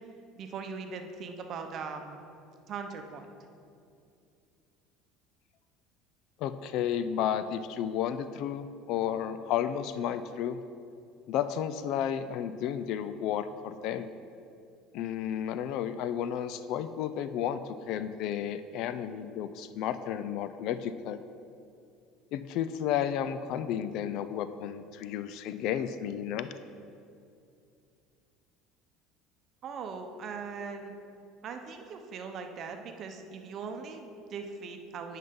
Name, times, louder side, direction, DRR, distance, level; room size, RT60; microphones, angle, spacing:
voice 1, 0.4-2.2 2.7-3.3 29.6-30.9 31.4-35.2, right 5 dB, 45° right, 5 dB, 0.7 m, -40 dB
voice 2, 6.4-10.6 11.3-14.1 14.9-21.2 22.3-26.5, left 9 dB, 65° left, 12 dB, 0.3 m, -32 dB
9.4 x 5.5 x 3.7 m, 2.5 s
supercardioid pair, 115°, 0 cm